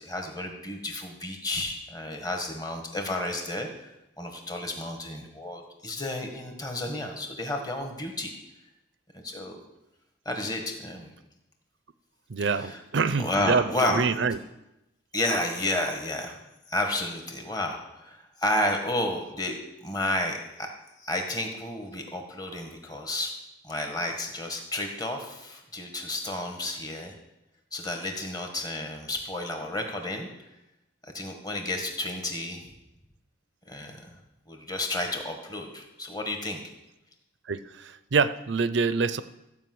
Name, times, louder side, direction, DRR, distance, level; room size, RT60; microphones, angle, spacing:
voice 1, 0.0-3.7 4.2-8.3 9.1-9.6 10.2-11.1 12.4-12.8 13.2-14.0 15.1-16.4 16.7-19.5 19.8-20.7 21.0-23.3 23.6-27.1 27.7-30.3 31.0-32.6 33.7-34.1 34.5-36.6, left 1 dB, 20° left, 3 dB, 1.5 m, -31 dB
voice 2, 12.3-14.4 37.5-39.2, right 5 dB, 65° right, 14 dB, 0.5 m, -26 dB
14.5 x 5.3 x 7.8 m, 0.93 s
head